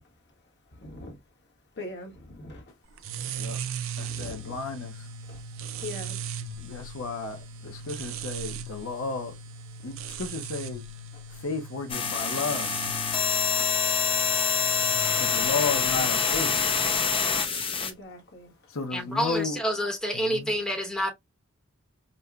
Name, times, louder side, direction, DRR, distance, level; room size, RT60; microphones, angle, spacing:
voice 1, 0.8-1.2 1.8-2.6 4.1-4.6 5.3-5.4 5.8-6.2 17.8-18.5, left 2 dB, 55° left, 1.2 m, -41 dB
sound 1, 3.0-17.7, right 5 dB, 60° right, 0.4 m, -38 dB
voice 2, 4.0-4.9 6.6-7.4 7.6-9.3 9.8-10.8 11.4-12.7 15.2-16.5 18.7-19.6 20.1-20.5, left 4 dB, 70° left, 0.7 m, -33 dB
sound 2, 11.9-17.9, left 7 dB, 25° left, 0.6 m, -26 dB
voice 3, 18.9-21.1, equal, 5° left, 1.0 m, -28 dB
5.3 x 2.1 x 2.3 m
head